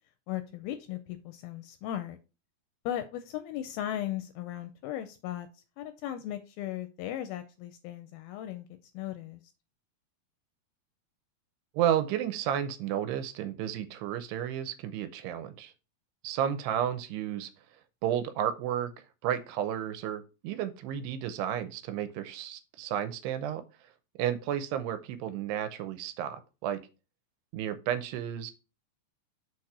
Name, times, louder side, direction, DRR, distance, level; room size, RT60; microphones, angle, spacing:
voice 1, 0.3-2.2 2.9-8.7 8.9-9.4, left 12 dB, 80° left, 9 dB, 2.2 m, -37 dB
voice 2, 11.7-15.7 16.2-17.5 18.0-23.6 24.2-26.8 27.5-28.5, right 10 dB, 90° right, 11 dB, 2.9 m, -32 dB
6.3 x 4.3 x 4.8 m, 0.31 s
omnidirectional pair, 4.6 m